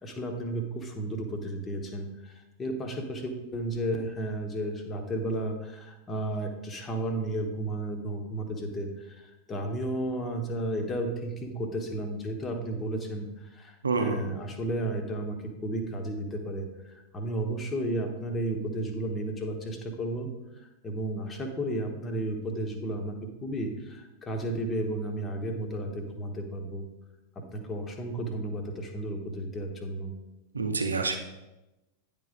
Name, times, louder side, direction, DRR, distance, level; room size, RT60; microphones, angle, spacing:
voice 1, 0.0-20.3 20.6-26.9 27.3-30.1, right 1 dB, 20° left, 4 dB, 1.2 m, -33 dB
voice 2, 13.8-14.2 30.5-31.2, right 4 dB, 75° right, 6 dB, 0.7 m, -27 dB
9.7 x 3.8 x 4.9 m, 1.0 s
figure-of-eight pair, 90°, 0 cm